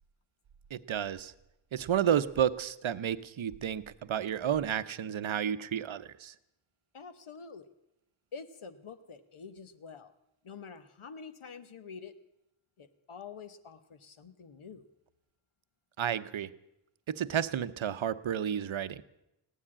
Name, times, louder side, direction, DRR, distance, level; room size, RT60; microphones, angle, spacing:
voice 1, 0.7-1.3 1.7-6.3 16.0-16.5 17.1-19.0, right 9 dB, 70° right, 15 dB, 0.7 m, -31 dB
voice 2, 6.9-7.7 8.3-10.1 10.4-12.1 12.8-14.9, left 5 dB, 85° left, 9 dB, 1.1 m, -47 dB
16.0 x 9.9 x 8.6 m, 0.86 s
wide cardioid pair, 75°, 48 cm